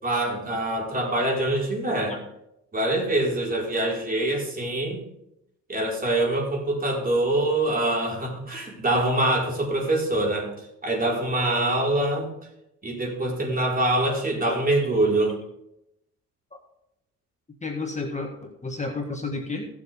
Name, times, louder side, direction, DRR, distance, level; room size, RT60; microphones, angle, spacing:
voice 1, 0.0-2.2 2.7-5.0 5.7-10.5 10.8-12.3 12.8-15.4, right 1 dB, 30° right, -1 dB, 4.3 m, -24 dB
voice 2, 17.6-19.6, left 3 dB, 25° left, 2 dB, 1.6 m, -31 dB
16.5 x 7.4 x 3.4 m, 0.82 s
cardioid pair, 90°, 30 cm